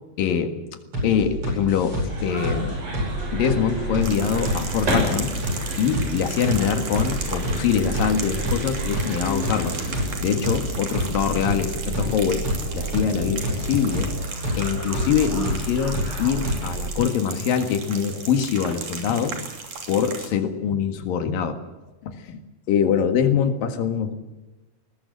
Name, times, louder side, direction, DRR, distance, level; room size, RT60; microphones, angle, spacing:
voice 1, 0.2-0.6 1.0-2.8 3.3-5.3 5.8-9.8 10.2-12.4 12.7-14.1 14.6-19.4 19.9-21.6 22.0-22.4 22.7-24.2, left 7 dB, 80° left, 7 dB, 3.5 m, -24 dB
sound 1, 0.9-16.9, equal, 40° right, 9.1 m, -28 dB
sound 2, 2.1-10.1, equal, 85° right, 8.9 m, -32 dB
sound 3, 4.0-20.3, right 5 dB, 60° right, 4.2 m, -36 dB
20.5 x 19.5 x 7.7 m, 1.1 s
omnidirectional pair, 4.0 m